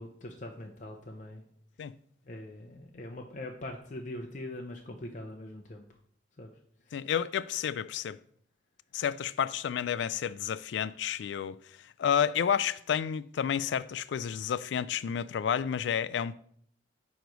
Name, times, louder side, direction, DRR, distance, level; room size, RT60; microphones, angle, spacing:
voice 1, 0.0-1.4 2.2-5.8 6.4-6.5 6.8-7.1, left 1 dB, 45° left, 0.6 m, -42 dB
voice 2, 6.9-8.2 8.9-11.6 12.0-16.4, left 8 dB, 80° left, 0.3 m, -30 dB
9.2 x 3.1 x 5.1 m
head